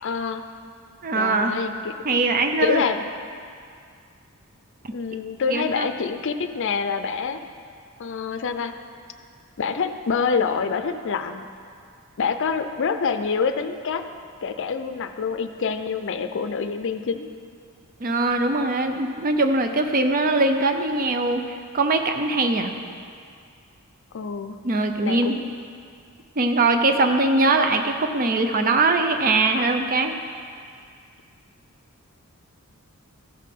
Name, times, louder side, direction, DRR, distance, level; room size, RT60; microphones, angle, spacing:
voice 1, 0.0-0.4 1.1-2.2 2.6-3.1 4.9-7.4 8.0-8.7 9.6-11.5 12.2-14.0 14.4-17.3 24.1-24.6 25.0-25.5, left 5 dB, 60° left, 9 dB, 0.5 m, -26 dB
voice 2, 1.0-1.6 2.0-2.8 5.5-5.9 18.0-22.7 24.6-25.4 26.4-30.1, right 2 dB, 40° right, 6 dB, 0.6 m, -21 dB
14.0 x 5.8 x 3.7 m, 2.3 s
head